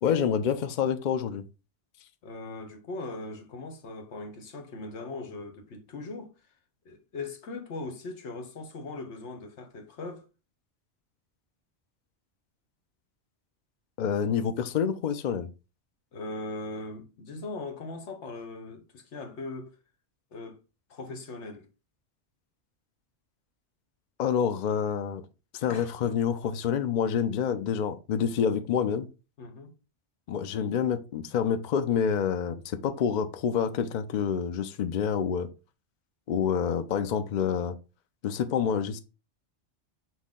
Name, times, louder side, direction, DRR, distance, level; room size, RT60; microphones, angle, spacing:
voice 1, 0.0-1.4 14.0-15.5 24.2-25.2 25.5-29.1 30.3-35.5 36.3-37.7 38.2-39.0, left 7 dB, 60° left, 0.5 m, -27 dB
voice 2, 2.2-6.3 6.8-10.2 16.1-19.8 20.3-20.6 20.9-21.7 25.7-26.2 29.4-29.7, left 3 dB, 80° left, 1.2 m, -39 dB
6.1 x 2.1 x 3.6 m
omnidirectional pair, 1.2 m